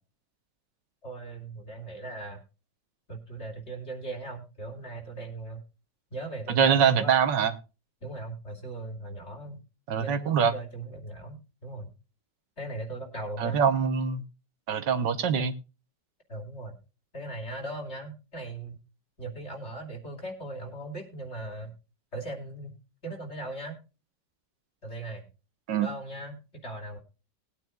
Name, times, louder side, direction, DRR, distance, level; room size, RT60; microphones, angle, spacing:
voice 1, 1.0-2.4 3.1-5.6 6.1-7.2 8.0-9.6 10.0-11.9 12.6-13.6 16.3-16.8 17.1-18.8 19.2-21.8 22.1-22.8 23.0-23.8 24.8-25.3 25.8-27.0, right 2 dB, 40° left, 2 dB, 2.9 m, -39 dB
voice 2, 6.5-7.5 9.9-10.5 13.4-14.2 14.7-15.5 25.7-25.9, right 7 dB, 90° right, 9 dB, 1.8 m, -24 dB
20.0 x 9.3 x 2.3 m, 0.31 s
omnidirectional pair, 1.9 m